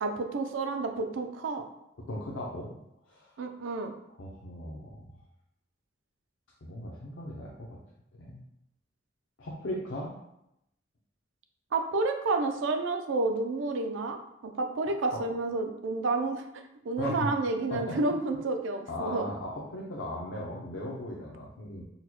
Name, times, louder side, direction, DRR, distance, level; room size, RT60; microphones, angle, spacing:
voice 1, 0.0-1.6 3.4-3.9 11.7-16.5 16.8-19.3, right 3 dB, 80° right, 6 dB, 0.4 m, -30 dB
voice 2, 2.1-2.8 3.1-3.3 4.2-5.1 6.6-7.8 8.2-8.4 9.4-10.1 17.0-17.3 17.7-18.0 18.9-21.8, left 1 dB, 75° left, -4 dB, 0.5 m, -37 dB
3.9 x 2.1 x 2.9 m, 0.81 s
head